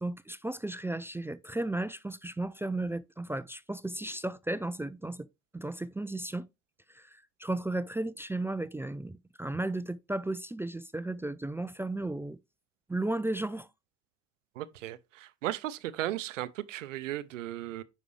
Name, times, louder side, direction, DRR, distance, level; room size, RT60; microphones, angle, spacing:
voice 1, 0.0-5.3 5.5-6.5 6.9-12.4 12.9-13.7, right 2 dB, 5° right, 0.3 m, -34 dB
voice 2, 14.6-17.8, right 14 dB, 85° right, 0.6 m, -36 dB
9.6 x 5.1 x 3.1 m
figure-of-eight pair, 50°, 37 cm